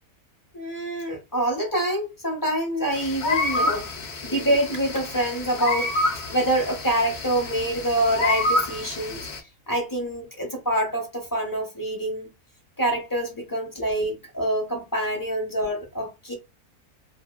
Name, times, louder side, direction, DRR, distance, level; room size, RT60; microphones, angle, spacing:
voice 1, 0.5-3.9 4.2-5.9 6.3-9.3 9.7-12.3 12.8-16.3, right 1 dB, 30° left, 0.4 m, -26 dB
sound 1, 2.9-9.4, left 2 dB, 65° left, 0.7 m, -28 dB
2.7 x 2.1 x 2.2 m
omnidirectional pair, 1.6 m